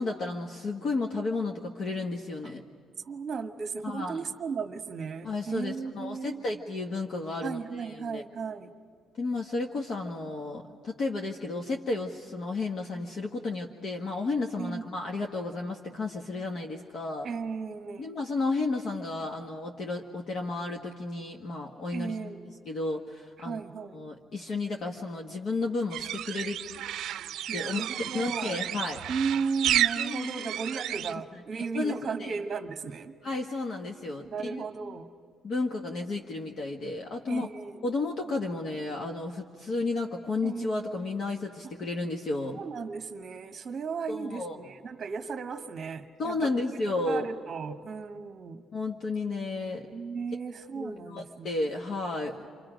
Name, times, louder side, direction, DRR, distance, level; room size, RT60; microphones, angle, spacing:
voice 1, 0.0-2.6 3.8-4.2 5.2-8.2 9.2-17.3 18.0-22.2 22.6-23.6 23.9-26.6 27.5-27.9 28.1-29.0 29.9-30.8 31.7-32.4 33.2-34.6 35.4-37.5 37.8-42.6 44.1-44.5 46.2-47.3 48.7-49.9 50.7-52.5, left 3 dB, 50° left, 1 dB, 1.4 m, -32 dB
voice 2, 3.0-6.5 7.4-8.7 14.6-14.8 17.2-18.1 21.9-22.4 23.4-24.0 27.5-28.6 29.1-33.2 34.3-35.1 37.3-37.8 40.4-40.7 42.5-46.8 47.0-48.6 49.9-51.6, right 5 dB, 35° right, 6 dB, 1.3 m, -35 dB
sound 1, 25.9-31.1, right 12 dB, 75° right, 0.5 m, -31 dB
29.5 x 25.5 x 5.1 m, 2.1 s
cardioid pair, 140°, 0 cm